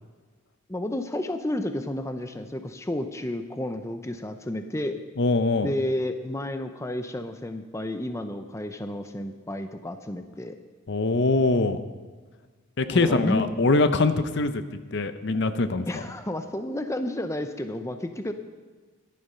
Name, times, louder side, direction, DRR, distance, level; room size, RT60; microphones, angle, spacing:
voice 1, 0.7-5.0 5.6-10.5 12.9-13.5 15.9-18.3, left 1 dB, 15° left, 8 dB, 0.5 m, -31 dB
voice 2, 5.2-5.7 10.9-11.8 12.8-14.6 14.9-16.0, left 3 dB, 55° left, 10 dB, 0.7 m, -23 dB
13.5 x 11.0 x 5.6 m, 1.4 s
head